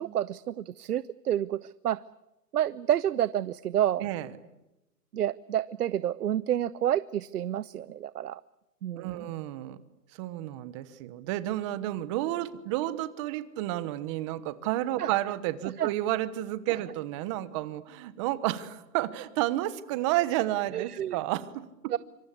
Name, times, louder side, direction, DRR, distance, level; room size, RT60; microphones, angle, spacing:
voice 1, 0.0-2.0 2.5-4.1 5.1-8.4 8.8-9.1 15.0-15.1 15.8-15.9 20.7-21.2 21.9-22.0, right 11 dB, 70° right, 18 dB, 0.9 m, -29 dB
voice 2, 8.9-9.8 10.2-21.9, right 15 dB, 20° right, 15 dB, 1.1 m, -31 dB
26.0 x 25.0 x 8.4 m, 0.96 s
hypercardioid pair, 160°, 49 cm